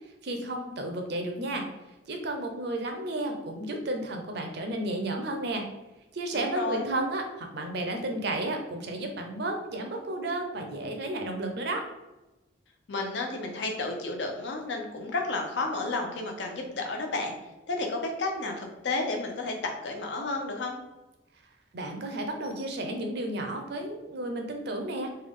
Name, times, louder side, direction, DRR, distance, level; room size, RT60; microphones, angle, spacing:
voice 1, 0.2-1.7 2.1-5.7 6.1-11.9 21.7-25.1, right 1 dB, 60° right, 3 dB, 0.6 m, -32 dB
voice 2, 6.3-6.9 12.9-17.3 17.7-20.8, left 2 dB, 65° left, 2 dB, 0.6 m, -32 dB
3.3 x 2.3 x 3.6 m, 1.0 s
head